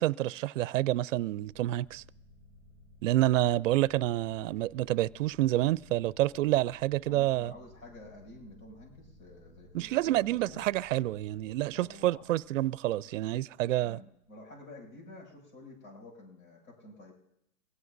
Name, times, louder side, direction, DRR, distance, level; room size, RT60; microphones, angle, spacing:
voice 1, 0.0-2.0 3.0-7.5 9.7-14.0, right 15 dB, 65° right, 0.5 m, -28 dB
sound 1, 1.4-14.6, left 1 dB, 65° left, 4.0 m, -58 dB
voice 2, 7.1-10.7 11.7-12.2 13.8-17.1, left 2 dB, 85° left, 6.9 m, -50 dB
24.5 x 16.5 x 2.7 m
hypercardioid pair, 140°, 41 cm